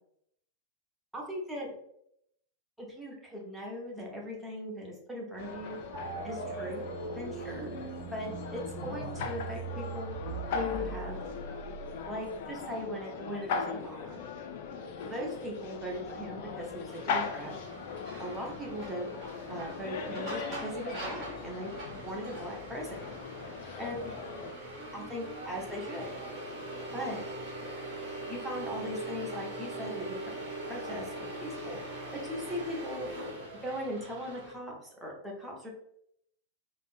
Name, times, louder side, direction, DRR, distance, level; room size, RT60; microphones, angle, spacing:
voice 1, 1.1-1.7 2.8-5.8 6.2-7.7 8.0-10.2 10.5-11.2 12.1-14.2 15.0-17.6 18.2-19.2 19.5-23.2 23.8-24.2 24.9-26.2 26.9-27.3 28.2-30.3 30.6-33.1 33.6-35.7, equal, 5° right, -2 dB, 0.8 m, -39 dB
sound 1, 5.4-24.5, left 5 dB, 50° left, 0.3 m, -39 dB
sound 2, 5.9-12.6, right 5 dB, 55° right, 0.5 m, -41 dB
sound 3, 16.9-34.5, right 1 dB, 30° right, 1.1 m, -42 dB
3.4 x 2.0 x 2.4 m, 0.73 s
figure-of-eight pair, 90°, 0 cm